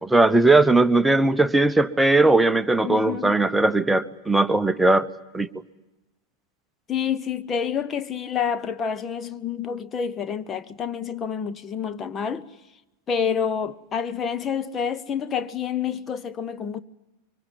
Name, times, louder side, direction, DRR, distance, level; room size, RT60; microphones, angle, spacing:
voice 1, 0.0-5.1 5.3-5.5, right 2 dB, 5° right, 0.9 m, -19 dB
voice 2, 2.8-3.5 6.9-12.5 13.1-16.8, left 7 dB, 25° left, 0.9 m, -28 dB
24.5 x 23.5 x 9.4 m
figure-of-eight pair, 90°, 0 cm